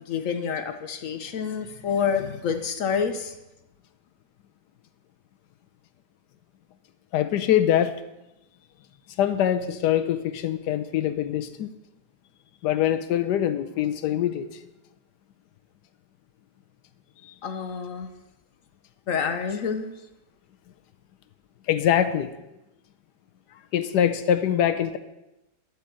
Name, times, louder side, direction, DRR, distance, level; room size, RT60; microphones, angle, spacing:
voice 1, 0.1-3.4 17.4-18.1 19.1-19.9, left 6 dB, 60° left, 8 dB, 1.1 m, -28 dB
voice 2, 7.1-8.0 9.2-11.7 12.6-14.6 21.7-22.3 23.7-25.0, left 10 dB, 85° left, 11 dB, 1.2 m, -23 dB
12.0 x 4.4 x 7.5 m, 0.94 s
omnidirectional pair, 1.7 m